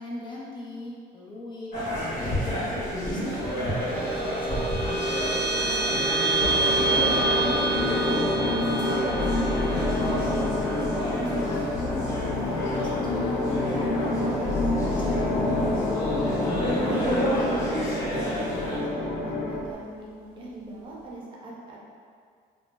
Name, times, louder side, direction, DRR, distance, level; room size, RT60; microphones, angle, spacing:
voice 1, 0.0-1.7 2.2-6.6 7.1-10.4 11.5-16.0, left 1 dB, 30° left, -4 dB, 0.4 m, -41 dB
sound 1, 1.7-18.8, equal, 50° left, 0.9 m, -31 dB
sound 2, 3.2-14.0, right 2 dB, 75° right, 0.5 m, -29 dB
sound 3, 6.4-19.7, left 2 dB, 85° left, 0.4 m, -27 dB
voice 2, 11.1-11.5 16.7-21.8, right 2 dB, 30° right, -4 dB, 0.5 m, -39 dB
2.1 x 2.0 x 3.1 m, 2.1 s
cardioid pair, 110°, 17 cm